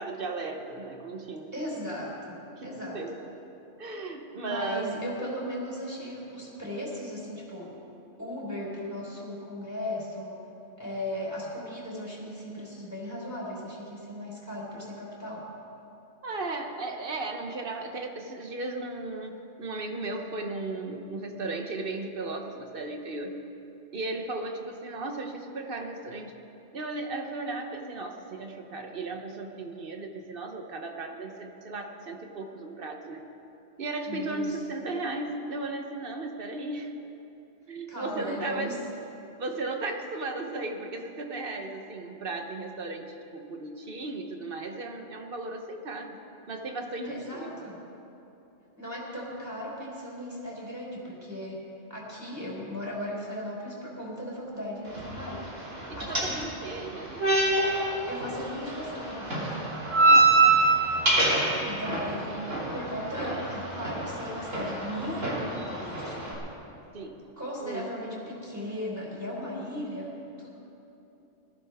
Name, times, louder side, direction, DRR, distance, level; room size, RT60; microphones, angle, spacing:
voice 1, 0.0-1.5 2.6-3.3 3.8-4.9 16.2-23.4 23.9-26.3 26.7-33.2 33.8-36.9 37.7-38.7 39.4-46.2 46.5-47.7 55.9-57.2 60.0-60.6 66.9-67.2 67.6-67.9, right 2 dB, 50° right, 4 dB, 1.2 m, -36 dB
voice 2, 1.5-3.0 4.4-7.8 8.2-10.5 10.8-15.5 34.1-34.6 37.9-38.8 46.8-47.8 48.8-55.5 56.0-56.5 58.1-59.6 61.6-66.4 67.4-70.5, left 1 dB, 15° right, -6 dB, 4.0 m, -37 dB
sound 1, 54.8-66.3, right 2 dB, 85° right, 3.2 m, -26 dB
20.5 x 14.5 x 3.6 m, 2.9 s
omnidirectional pair, 1.3 m